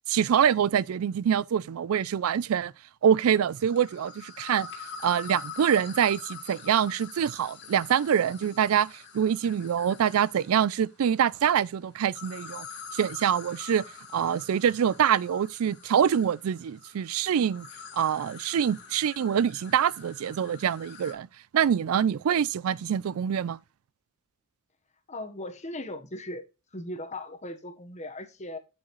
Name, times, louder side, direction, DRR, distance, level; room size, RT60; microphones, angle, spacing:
voice 1, 0.1-2.7 3.0-4.7 5.0-12.7 12.9-13.8 14.1-17.7 17.9-21.3 21.5-23.6, right 8 dB, 85° right, 0.4 m, -25 dB
sound 1, 3.5-10.6 12.0-21.1, left 6 dB, 55° left, 1.8 m, -45 dB
voice 2, 25.1-26.4 26.7-28.6, left 1 dB, 35° left, 1.1 m, -38 dB
8.3 x 7.3 x 3.1 m
head